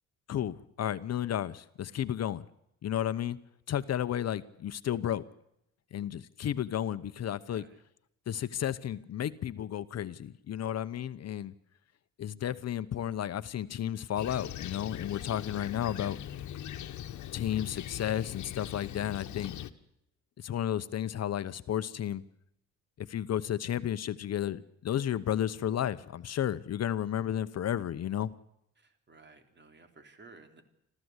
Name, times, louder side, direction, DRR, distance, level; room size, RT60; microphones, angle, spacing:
voice 1, 0.3-2.4 2.8-3.4 3.7-5.2 5.9-7.6 8.3-11.5 12.2-16.2 17.3-19.5 20.4-22.2 23.0-28.3, left 10 dB, 55° left, 13 dB, 1.0 m, -32 dB
voice 2, 7.5-7.8 28.8-30.6, right 3 dB, 35° right, 7 dB, 3.7 m, -56 dB
Fixed-wing aircraft airplane, 14.2-19.7, left 11 dB, 75° left, 1.4 m, -41 dB
26.5 x 14.5 x 8.1 m, 0.79 s
cardioid pair, 90°, 30 cm